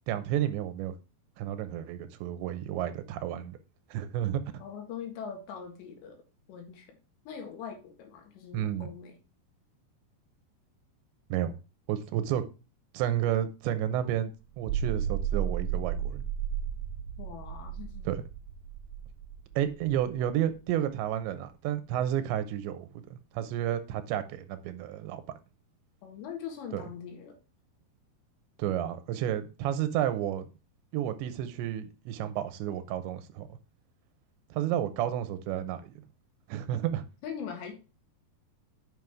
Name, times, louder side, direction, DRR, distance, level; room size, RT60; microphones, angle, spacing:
voice 1, 0.1-0.9 1.4-3.6 3.9-4.4 8.5-8.9 11.3-11.6 11.9-12.4 12.9-14.3 14.6-16.2 18.1-18.2 19.6-25.2 26.7-26.8 28.6-30.5 30.9-33.5 34.5-36.0 36.5-37.0, right 11 dB, 85° right, 3.1 m, -31 dB
voice 2, 4.6-6.2 6.5-7.0 7.3-9.2 17.2-18.1 26.0-27.4 34.7-35.0 37.2-37.7, left 7 dB, 80° left, 3.8 m, -42 dB
sound 1, 14.5-21.0, right 8 dB, 70° right, 2.4 m, -34 dB
9.3 x 5.6 x 3.5 m
omnidirectional pair, 5.1 m